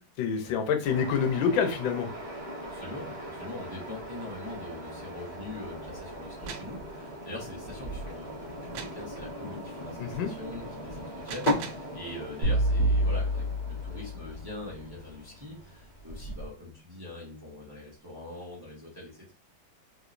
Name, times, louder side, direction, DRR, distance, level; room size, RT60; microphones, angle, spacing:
voice 1, 0.2-2.1 10.0-10.3, left 7 dB, 80° left, 6 dB, 1.4 m, -27 dB
sound 1, 0.8-16.5, equal, 25° left, 1.2 m, -38 dB
voice 2, 2.7-19.3, left 2 dB, 15° right, -4 dB, 0.8 m, -43 dB
sound 2, 6.2-6.8 8.7-9.1 11.0-11.9, right 7 dB, 85° right, 1.3 m, -41 dB
sound 3, 12.4-14.7, right 1 dB, 60° right, 1.4 m, -27 dB
3.6 x 2.9 x 2.5 m, 0.37 s
omnidirectional pair, 2.1 m